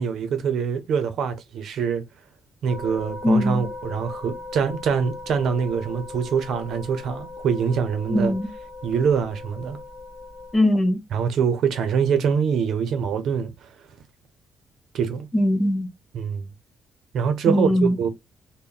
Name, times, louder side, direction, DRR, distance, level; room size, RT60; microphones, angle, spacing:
voice 1, 0.0-2.0 2.6-8.3 8.8-9.8 11.1-13.5 14.9-15.3 16.1-16.5 17.1-18.1, right 6 dB, 70° right, 0.6 m, -24 dB
sound 1, 2.7-10.6, left 3 dB, 10° right, 2.1 m, -38 dB
voice 2, 3.2-3.6 8.1-8.5 10.5-11.0 15.3-15.9 17.5-18.0, left 1 dB, 20° left, 0.7 m, -20 dB
3.5 x 2.1 x 2.2 m
cardioid pair, 90°, 0 cm